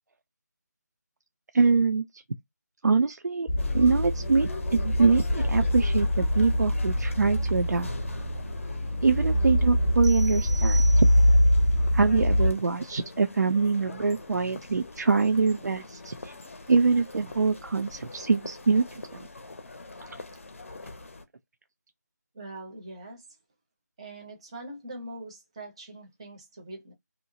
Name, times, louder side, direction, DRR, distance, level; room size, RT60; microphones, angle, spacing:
voice 1, 1.5-2.0 2.8-3.5 3.7-7.9 9.0-11.1 11.9-16.1 16.7-18.8, right 4 dB, 70° right, 0.4 m, -24 dB
sound 1, 3.5-12.5, left 1 dB, 15° left, 0.8 m, -24 dB
sound 2, 3.6-21.2, left 3 dB, 45° left, 0.6 m, -44 dB
sound 3, 10.0-11.6, right 3 dB, 85° right, 0.8 m, -41 dB
voice 2, 22.3-23.2 24.0-26.9, right 1 dB, 20° right, 0.6 m, -42 dB
2.8 x 2.0 x 2.7 m
figure-of-eight pair, 165°, 10 cm